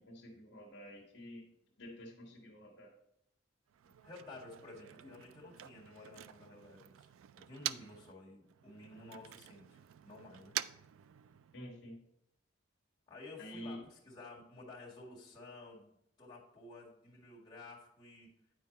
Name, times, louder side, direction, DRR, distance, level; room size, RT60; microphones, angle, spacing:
voice 1, 0.0-1.5 1.8-2.9 11.5-12.0 13.4-13.8, equal, 60° left, -2 dB, 1.4 m, -49 dB
Motor vehicle (road), 3.7-8.1 8.4-11.7, right 12 dB, 90° right, 0.3 m, -46 dB
voice 2, 3.8-7.1 7.5-10.6 13.1-18.3, left 2 dB, 20° left, -4 dB, 1.9 m, -53 dB
9.4 x 4.6 x 4.1 m, 0.78 s
head